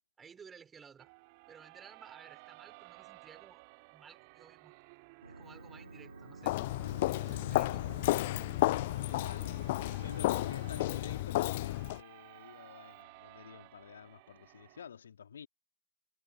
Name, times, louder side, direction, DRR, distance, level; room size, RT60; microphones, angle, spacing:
voice 1, 0.2-1.1 1.5-3.6 3.9-4.7 5.3-6.6 7.2-7.9, right 6 dB, 20° right, 5.3 m, -56 dB
sound 1, 1.0-14.9, right 30 dB, 45° right, 2.6 m, -56 dB
Organ, 5.2-11.0, right 2 dB, 85° right, 2.8 m, -52 dB
Walk footsteps, 6.4-12.0, left 18 dB, 55° left, 0.4 m, -32 dB
voice 2, 9.1-9.5 10.0-15.5, left 7 dB, 70° left, 2.4 m, -49 dB
figure-of-eight pair, 90°, 0 cm